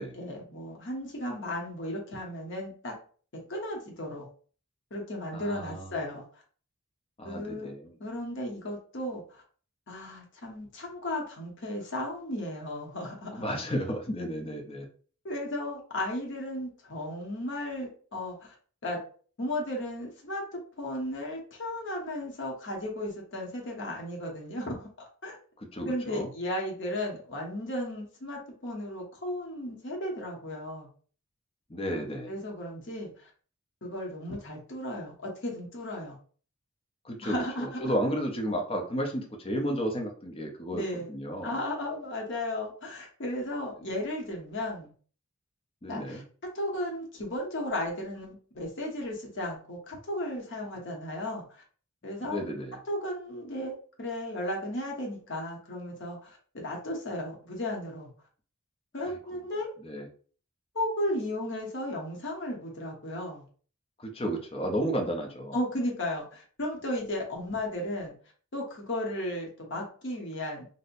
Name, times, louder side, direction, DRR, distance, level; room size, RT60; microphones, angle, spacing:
voice 1, 0.2-2.9 3.3-4.3 4.9-6.2 7.2-7.7 8.0-9.4 9.9-13.4 15.2-18.5 18.8-19.0 19.4-25.4 25.8-30.9 32.3-33.3 33.8-36.2 37.2-37.9 40.7-41.1 41.4-44.9 45.9-46.2 46.5-51.6 52.0-52.4 52.9-58.1 58.9-59.7 60.7-63.4 65.5-68.2 68.5-70.7, left 1 dB, 55° left, -1 dB, 0.9 m, -35 dB
voice 2, 5.3-5.9 7.2-7.9 13.3-14.9 25.6-26.3 31.7-32.3 37.0-41.6 45.8-46.2 52.2-52.8 59.0-59.1 59.8-60.1 64.0-65.6, equal, 25° left, 2 dB, 0.6 m, -33 dB
4.1 x 2.1 x 2.6 m, 0.43 s
head